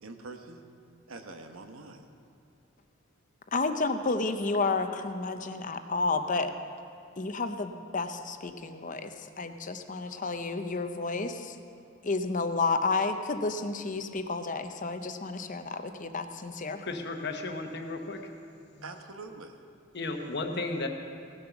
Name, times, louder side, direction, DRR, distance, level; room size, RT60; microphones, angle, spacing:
voice 1, 0.0-0.6 1.1-2.1 16.7-16.8 18.5-19.7, right 3 dB, 90° right, 5 dB, 1.1 m, -45 dB
voice 2, 3.5-6.5 7.2-11.6 12.0-16.8, left 3 dB, 40° left, 8 dB, 0.7 m, -31 dB
voice 3, 16.8-18.2 19.9-20.9, left 2 dB, 55° left, 4 dB, 1.1 m, -34 dB
17.5 x 7.7 x 5.9 m, 2.5 s
head